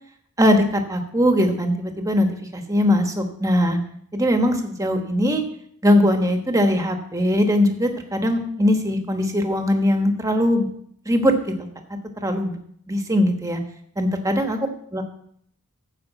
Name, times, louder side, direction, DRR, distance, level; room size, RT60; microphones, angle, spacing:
voice 1, 0.4-2.3 2.5-3.8 4.1-5.4 5.8-10.7 11.1-11.3 12.2-12.6 12.9-13.6 14.0-14.6 14.9-15.0, left 1 dB, 15° right, 5 dB, 1.2 m, -20 dB
14.5 x 5.1 x 5.9 m, 0.67 s
head